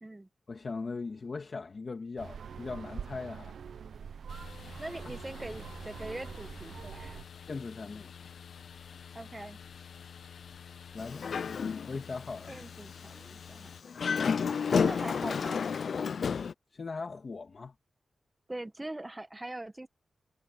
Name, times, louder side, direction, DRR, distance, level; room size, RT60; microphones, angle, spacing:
voice 1, 0.5-3.6 5.0-5.1 7.5-8.1 10.9-11.3 11.9-12.5 16.7-17.7, left 4 dB, 40° left, 2.2 m, -39 dB
sound 1, 2.2-7.2, right 7 dB, 90° right, 0.7 m, -44 dB
sound 2, 4.3-13.8, left 7 dB, 85° left, 1.0 m, -49 dB
voice 2, 4.8-7.2 9.1-9.6 12.5-13.7 14.7-15.6 18.5-19.9, right 1 dB, 15° right, 1.2 m, -42 dB
Dog, 11.0-12.1 12.5-12.6 13.9-16.5, left 6 dB, 65° left, 0.4 m, -30 dB
wide cardioid pair, 150°, 0 cm